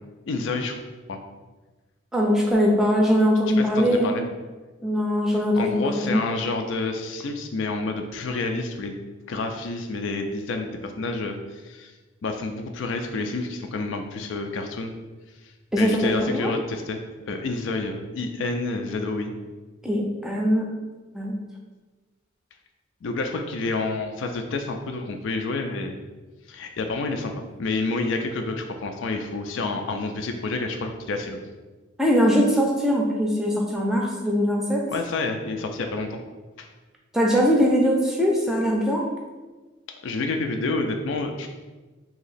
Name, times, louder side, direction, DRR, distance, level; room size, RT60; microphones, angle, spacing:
voice 1, 0.3-0.8 1.1-1.2 3.6-4.2 5.3-9.0 9.3-11.9 12.2-14.9 15.4-17.0 17.3-19.3 23.0-26.0 26.5-31.4 34.9-36.2 36.6-36.7 40.0-41.5, left 3 dB, 75° left, 4 dB, 0.4 m, -29 dB
voice 2, 2.1-4.2 4.8-6.2 15.7-16.5 19.8-20.7 21.1-21.3 32.0-34.8 37.1-39.0, equal, ahead, -2 dB, 0.5 m, -21 dB
2.9 x 2.8 x 4.1 m, 1.2 s
head